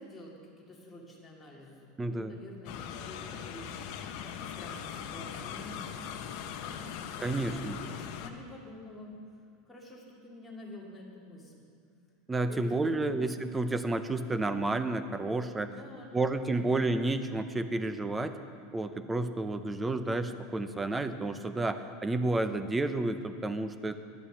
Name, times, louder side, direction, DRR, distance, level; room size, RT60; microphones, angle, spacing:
voice 1, 0.0-5.9 6.7-6.9 7.1-9.1 9.7-11.6 12.5-13.2 15.6-16.8, left 1 dB, 10° left, -4 dB, 2.1 m, -48 dB
voice 2, 2.0-2.4 7.2-7.8 12.3-15.8 16.1-18.4 18.7-24.0, right 2 dB, 10° right, 10 dB, 0.5 m, -31 dB
sound 1, 2.7-8.3, left 8 dB, 55° left, 0.8 m, -40 dB
11.5 x 8.6 x 7.0 m, 2.4 s
supercardioid pair, 155°, 0 cm